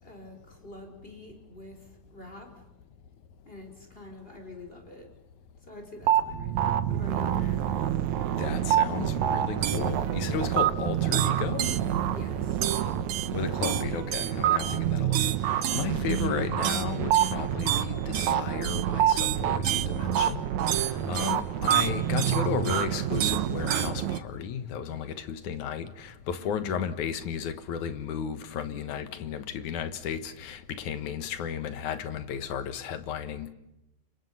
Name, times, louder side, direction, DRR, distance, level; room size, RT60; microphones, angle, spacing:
voice 1, 0.0-2.6 3.4-5.1 5.6-7.4 10.6-10.9 12.0-12.6 15.9-16.3 21.3-21.6 26.4-26.9, left 2 dB, 20° left, 4.9 m, -47 dB
sound 1, 6.0-24.2, right 10 dB, 75° right, 2.4 m, -27 dB
voice 2, 8.4-11.7 13.3-20.4 20.8-33.5, left 8 dB, 85° left, 2.8 m, -34 dB
29.5 x 25.5 x 5.5 m
omnidirectional pair, 3.4 m